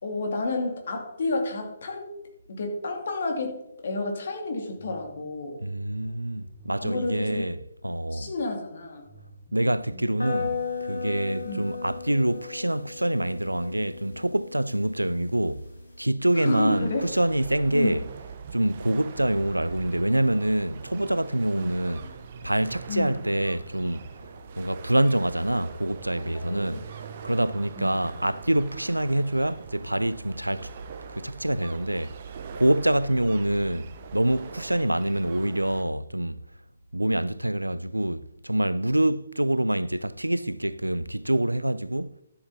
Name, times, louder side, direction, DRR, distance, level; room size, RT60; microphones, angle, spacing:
voice 1, 0.0-2.1 2.5-5.6 6.8-7.4 8.1-9.0 11.4-11.7 16.3-17.0 17.7-17.9 22.9-23.2 26.5-26.7 27.7-28.0, left 2 dB, 55° left, 2.5 m, -30 dB
sound 1, 4.8-7.9 9.1-12.0, equal, 5° left, 2.1 m, -53 dB
voice 2, 5.6-7.6 7.8-8.3 9.5-10.6 10.8-15.7 16.0-18.0 18.5-22.2 22.4-24.1 24.6-26.9 27.2-30.7 31.1-32.1 32.6-36.4 36.9-42.2, right 1 dB, 90° right, 0.4 m, -26 dB
sound 2, 10.2-16.0, left 5 dB, 85° left, 3.0 m, -36 dB
sound 3, 16.7-35.8, right 6 dB, 45° right, 1.0 m, -42 dB
12.5 x 7.3 x 4.2 m
figure-of-eight pair, 135°, 0 cm